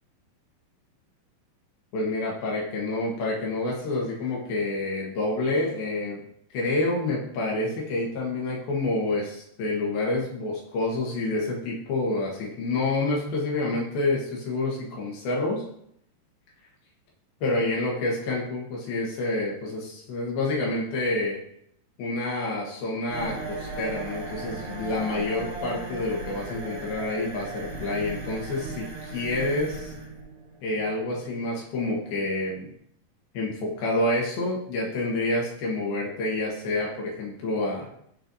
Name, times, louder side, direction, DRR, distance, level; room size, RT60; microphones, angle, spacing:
voice 1, 1.9-6.2 6.5-15.6 17.4-21.4 22.0-28.9 29.1-29.9 30.6-32.7 33.3-37.9, left 2 dB, 75° left, -3 dB, 3.3 m, -28 dB
sound 1, 23.1-32.7, right 3 dB, 55° right, 3.5 m, -37 dB
11.0 x 4.4 x 2.7 m, 0.70 s
omnidirectional pair, 4.4 m